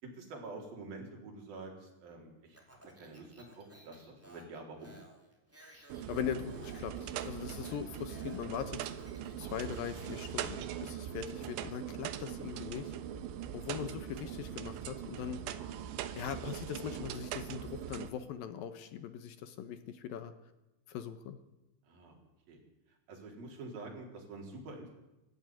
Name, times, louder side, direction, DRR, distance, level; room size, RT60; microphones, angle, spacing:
voice 1, 0.0-2.6 3.0-4.9 7.6-7.7 15.2-15.3 21.8-22.2 22.5-22.6 23.1-25.0, right 3 dB, 50° right, 0 dB, 5.9 m, -47 dB
Speech, 2.5-10.3, equal, 5° right, 3.3 m, -57 dB
sound 1, 5.9-18.1, right 10 dB, 85° right, 3.4 m, -41 dB
voice 2, 6.1-9.1 9.4-12.9 13.5-15.4 16.2-20.3 20.9-21.4, left 8 dB, 75° left, 11 dB, 2.2 m, -40 dB
23.5 x 14.5 x 9.8 m, 1.0 s
omnidirectional pair, 5.4 m